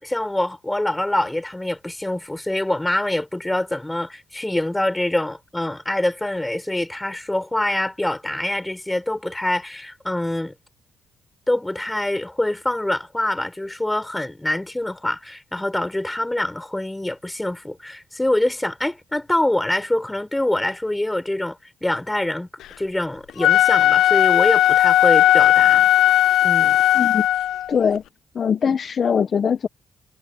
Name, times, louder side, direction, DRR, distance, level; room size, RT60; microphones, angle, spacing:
voice 1, 0.0-10.5 11.5-22.5 22.8-25.9 26.4-26.8, left 1 dB, 10° left, 7.3 m, -25 dB
Wind instrument woodwind instrument, 23.3-27.7, left 13 dB, 80° left, 0.5 m, -16 dB
voice 2, 26.9-27.3 27.7-28.0 28.3-29.7, left 7 dB, 50° left, 1.1 m, -21 dB
cardioid pair, 90°, 0 cm